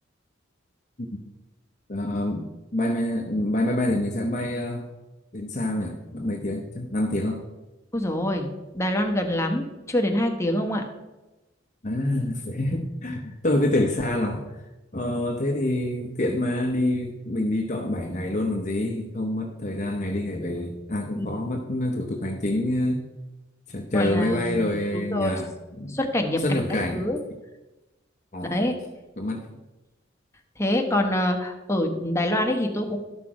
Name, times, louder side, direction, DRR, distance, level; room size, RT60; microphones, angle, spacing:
voice 1, 1.9-4.9 5.3-7.4 11.8-23.1 23.7-25.5 25.8-26.0 26.4-27.0 28.3-28.7 29.2-29.4, left 1 dB, 40° left, 2 dB, 0.9 m, -27 dB
voice 2, 7.9-8.5 8.7-10.8 21.2-21.3 23.9-25.4 25.9-27.2 28.4-28.8 30.6-33.0, left 1 dB, 15° left, 3 dB, 1.1 m, -25 dB
12.0 x 5.9 x 4.9 m, 1.1 s
head